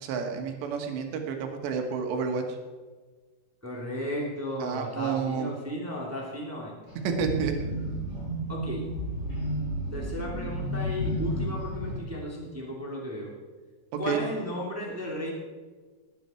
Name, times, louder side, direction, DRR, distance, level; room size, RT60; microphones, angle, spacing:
voice 1, 0.0-2.4 4.6-5.5 7.2-7.5 14.1-14.2, right 6 dB, 85° right, 4 dB, 3.7 m, -30 dB
voice 2, 3.6-6.7 8.5-8.9 9.9-13.3 14.0-15.3, left 1 dB, 5° right, -2 dB, 1.7 m, -34 dB
sound 1, 6.9-12.0, equal, 40° left, 6.6 m, -32 dB
19.5 x 9.4 x 4.5 m, 1.4 s
omnidirectional pair, 4.9 m